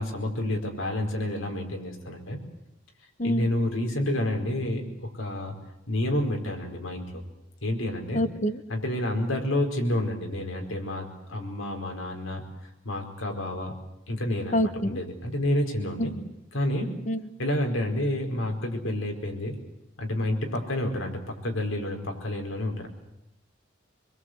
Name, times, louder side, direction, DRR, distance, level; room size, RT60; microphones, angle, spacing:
voice 1, 0.0-2.4 3.2-5.6 5.9-7.2 7.6-8.2 8.7-12.4 12.8-13.7 14.1-16.1 16.5-17.0 17.4-19.5 20.0-22.9, left 1 dB, 85° left, 3 dB, 4.8 m, -29 dB
voice 2, 8.1-8.6 14.5-15.0 16.0-16.2 17.1-17.2, equal, 35° left, 11 dB, 1.2 m, -26 dB
26.0 x 22.0 x 8.0 m, 0.85 s
head